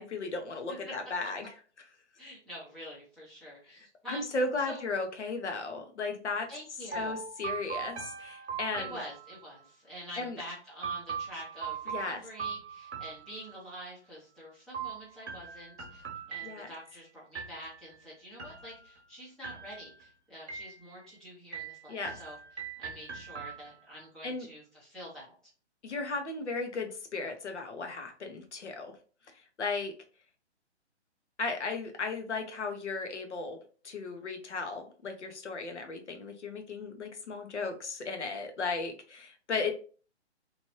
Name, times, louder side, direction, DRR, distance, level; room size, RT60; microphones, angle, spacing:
voice 1, 0.0-1.5 3.7-6.5 6.9-9.0 10.2-10.4 11.9-12.2 16.4-16.7 21.9-22.2 24.2-24.5 25.8-28.9 29.6-29.9 31.4-33.6 33.8-39.7, left 3 dB, 75° left, 5 dB, 0.9 m, -35 dB
voice 2, 2.2-4.3 4.6-4.8 6.5-7.2 8.8-22.4 22.8-25.3, equal, ahead, -9 dB, 0.5 m, -46 dB
sound 1, 6.9-9.7 10.8-13.8 14.7-16.9 17.4-18.0 18.4-19.1 19.4-20.1 20.5-21.1 21.5-24.0, right 6 dB, 70° right, 0.9 m, -41 dB
3.1 x 2.6 x 3.0 m, 0.39 s
figure-of-eight pair, 135°, 35 cm